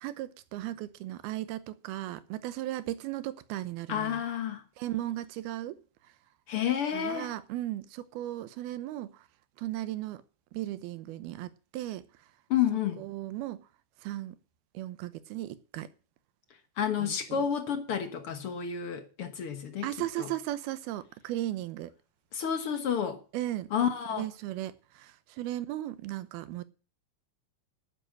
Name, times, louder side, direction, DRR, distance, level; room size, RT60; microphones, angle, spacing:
voice 1, 0.0-4.2 4.8-5.8 6.9-9.1 9.6-10.2 10.5-12.0 13.0-13.6 14.0-14.4 14.7-15.9 17.0-17.4 19.8-21.9 23.3-23.7 24.1-25.1 25.4-26.6, right 14 dB, 85° right, 2.8 m, -36 dB
voice 2, 3.9-4.6 6.5-7.3 12.5-13.0 16.8-19.9 20.2-20.3 22.3-23.2 23.7-24.3, left 8 dB, 60° left, 1.4 m, -30 dB
11.0 x 9.4 x 6.4 m
omnidirectional pair, 4.4 m